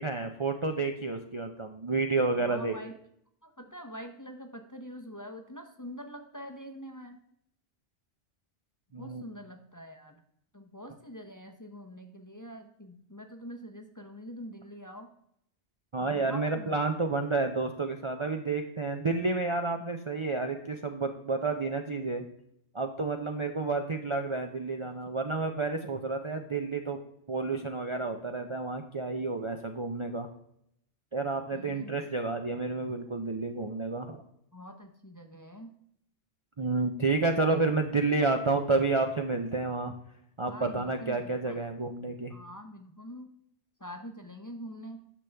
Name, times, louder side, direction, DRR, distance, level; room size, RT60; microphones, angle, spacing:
voice 1, 0.0-2.8 8.9-9.2 15.9-22.3 22.7-27.0 27.3-30.3 31.1-34.2 36.6-39.9 40.4-42.3, right 3 dB, 35° right, 4 dB, 0.5 m, -30 dB
voice 2, 2.3-3.0 3.4-7.2 9.0-10.1 10.5-15.1 16.0-16.8 31.5-31.9 34.5-35.7 40.5-41.6 42.3-43.3 43.8-45.0, equal, 20° left, 4 dB, 0.7 m, -45 dB
10.0 x 6.8 x 3.4 m, 0.73 s
omnidirectional pair, 1.2 m